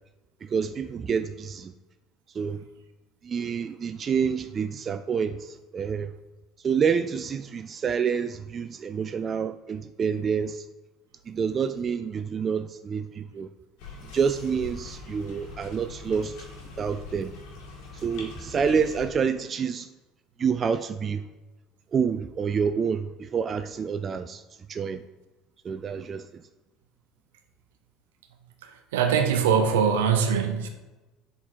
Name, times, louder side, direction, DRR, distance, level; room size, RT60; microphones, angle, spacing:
voice 1, 0.4-1.7 2.3-2.6 3.2-6.1 6.6-10.6 11.3-13.5 14.1-16.3 16.8-17.3 18.0-19.9 20.4-21.2 21.9-24.4 24.7-25.0 25.6-26.4, right 6 dB, 35° right, 11 dB, 0.3 m, -28 dB
sound 1, 13.8-19.1, left 3 dB, 65° left, 1.9 m, -42 dB
voice 2, 28.9-30.7, right 7 dB, 80° right, 6 dB, 0.8 m, -22 dB
7.6 x 3.9 x 4.6 m, 1.1 s
hypercardioid pair, 70°, 0 cm